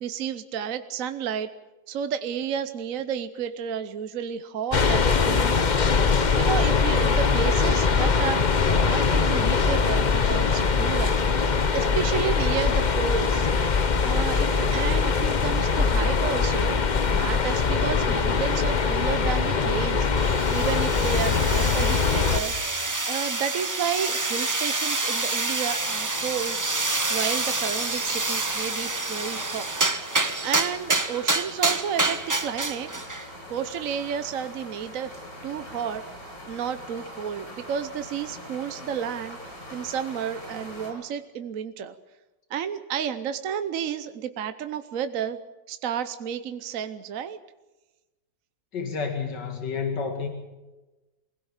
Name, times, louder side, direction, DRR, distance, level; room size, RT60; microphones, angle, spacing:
voice 1, 0.0-1.5 1.9-5.6 6.0-11.2 11.5-13.5 14.0-20.1 20.5-26.6 27.1-32.9 33.5-35.2 35.4-39.4 39.7-41.9 42.5-45.4 45.7-47.4, right 8 dB, 60° right, 10 dB, 1.1 m, -32 dB
sound 1, 4.7-22.4, left 5 dB, 35° left, 0.8 m, -22 dB
sound 2, 20.2-33.3, right 3 dB, 25° right, 0.4 m, -27 dB
sound 3, 25.8-40.9, left 1 dB, 55° left, 7.4 m, -43 dB
voice 2, 48.7-50.3, left 5 dB, 80° left, 4 dB, 2.8 m, -30 dB
23.5 x 17.0 x 7.3 m, 1.1 s
omnidirectional pair, 1.8 m